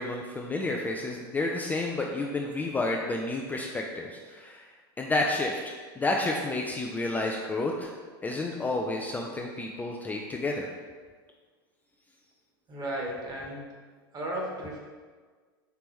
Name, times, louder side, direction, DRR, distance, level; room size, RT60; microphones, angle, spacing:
voice 1, 0.0-4.7 5.0-7.9 8.2-10.7, left 2 dB, 15° left, 0 dB, 0.3 m, -30 dB
voice 2, 12.7-13.7 14.1-14.8, right 1 dB, 30° right, -2 dB, 1.3 m, -34 dB
4.5 x 2.9 x 3.6 m, 1.5 s
hypercardioid pair, 95°, 13 cm